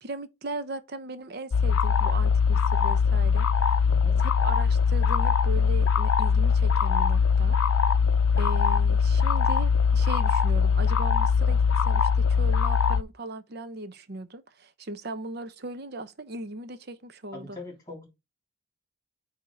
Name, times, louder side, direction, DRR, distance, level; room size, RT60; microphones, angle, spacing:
voice 1, 0.0-3.8 4.2-7.6 8.4-17.6, right 2 dB, 50° right, 0.8 m, -38 dB
sound 1, 1.5-13.0, left 6 dB, 90° left, 0.5 m, -22 dB
voice 2, 3.9-4.2 17.3-18.1, left 2 dB, 20° left, 3.0 m, -41 dB
8.7 x 2.9 x 5.0 m
head